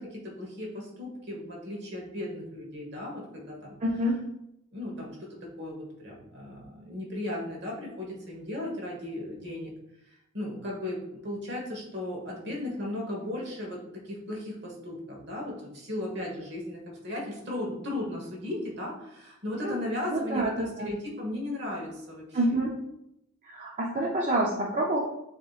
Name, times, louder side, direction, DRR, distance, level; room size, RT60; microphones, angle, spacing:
voice 1, 0.0-3.8 4.7-5.3 5.6-9.7 10.1-13.8 14.0-22.6, left 1 dB, 50° right, -1 dB, 1.2 m, -36 dB
voice 2, 3.8-4.2 19.6-19.8 20.1-20.9 22.3-22.7 23.4-25.0, right 1 dB, 30° right, -3 dB, 0.5 m, -27 dB
6.9 x 2.8 x 2.4 m, 0.82 s
head